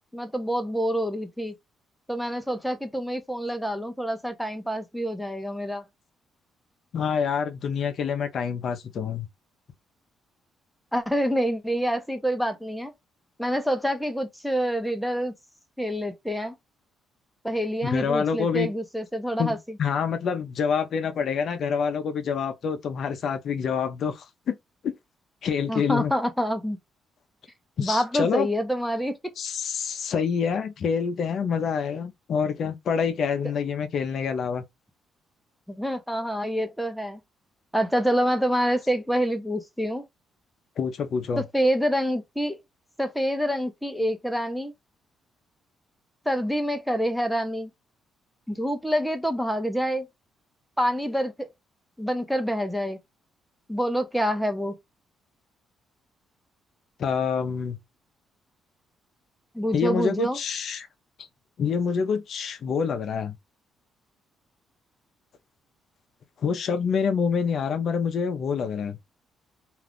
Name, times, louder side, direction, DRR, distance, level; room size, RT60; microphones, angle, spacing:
voice 1, 0.1-1.5 2.1-5.8 10.9-12.9 13.4-15.3 15.8-16.5 17.4-19.8 25.7-26.8 27.8-29.2 35.7-37.2 37.7-40.0 41.4-42.6 43.0-44.7 46.3-47.7 48.5-50.1 50.8-51.5 52.0-53.0 53.7-54.7 59.5-60.4, equal, ahead, 0.6 m, -27 dB
voice 2, 6.9-9.3 17.8-18.7 19.4-24.5 24.8-24.9 25.4-26.1 27.8-28.5 29.4-34.7 40.8-41.4 57.0-57.8 59.7-60.9 61.6-63.4 66.4-69.0, left 6 dB, 60° left, 0.5 m, -27 dB
2.5 x 2.3 x 3.4 m
cardioid pair, 90°, 0 cm